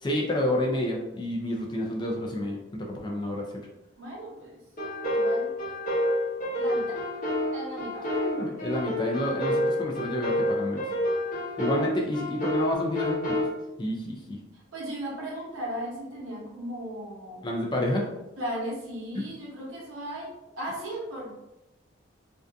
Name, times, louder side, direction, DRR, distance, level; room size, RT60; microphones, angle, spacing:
voice 1, 0.0-3.4 8.1-10.8 11.6-13.5 13.8-14.4 17.4-18.1 19.2-19.3, left 1 dB, 20° left, -1 dB, 0.3 m, -29 dB
voice 2, 4.0-4.6 5.1-5.5 6.5-7.0 7.5-8.1 14.5-17.4 18.4-21.3, equal, 90° right, -4 dB, 0.9 m, -36 dB
sound 1, 4.8-13.5, left 1 dB, 40° left, 0.8 m, -29 dB
2.6 x 2.4 x 2.2 m, 0.93 s
head